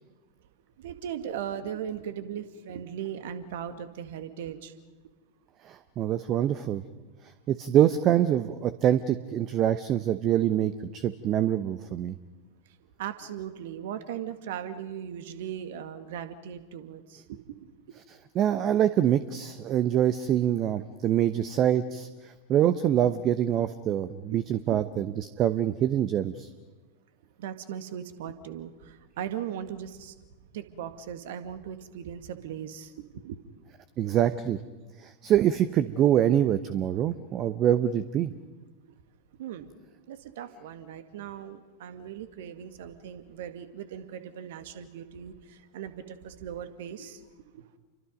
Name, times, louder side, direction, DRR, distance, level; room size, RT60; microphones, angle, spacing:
voice 1, 0.8-4.7 13.0-17.7 24.3-24.8 27.4-30.1 30.5-33.4 39.4-39.7 40.1-47.2 47.5-47.6, right 9 dB, 55° right, 10 dB, 1.9 m, -38 dB
voice 2, 5.6-6.8 7.5-12.2 18.3-26.5 34.0-34.6 35.0-38.3, right 11 dB, 35° right, 13 dB, 0.9 m, -25 dB
30.0 x 24.0 x 5.3 m, 1.3 s
figure-of-eight pair, 90°, 0 cm